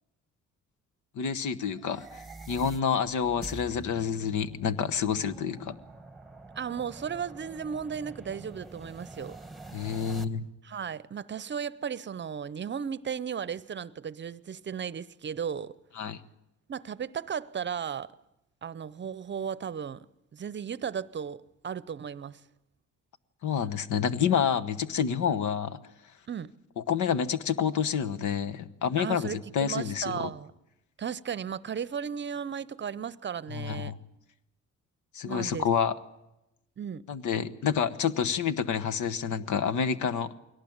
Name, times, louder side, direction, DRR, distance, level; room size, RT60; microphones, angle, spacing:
voice 1, 1.1-2.2 2.5-5.8 9.7-10.5 16.0-16.2 23.4-25.8 26.8-30.3 33.5-34.0 35.1-35.9 37.1-40.3, left 7 dB, 75° left, 1.2 m, -28 dB
sound 1, 1.7-10.2, right 2 dB, ahead, 1.3 m, -46 dB
voice 2, 6.6-9.4 10.6-15.7 16.7-18.1 18.6-20.1 20.3-22.4 26.3-26.5 29.0-30.5 31.0-33.9 35.3-35.7 36.8-37.0, right 7 dB, 40° right, 0.7 m, -35 dB
21.5 x 18.0 x 8.8 m
cardioid pair, 90°, 30 cm